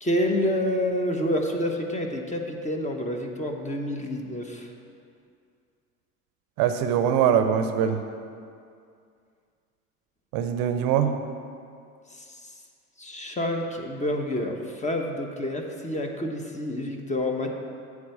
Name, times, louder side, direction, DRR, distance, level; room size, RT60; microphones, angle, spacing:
voice 1, 0.0-4.7 12.1-12.5 13.0-17.5, left 1 dB, 15° left, 3 dB, 1.1 m, -28 dB
voice 2, 6.6-8.0 10.3-11.1, right 8 dB, 55° right, 8 dB, 0.7 m, -22 dB
8.4 x 4.9 x 6.7 m, 2.3 s
hypercardioid pair, 75°, 43 cm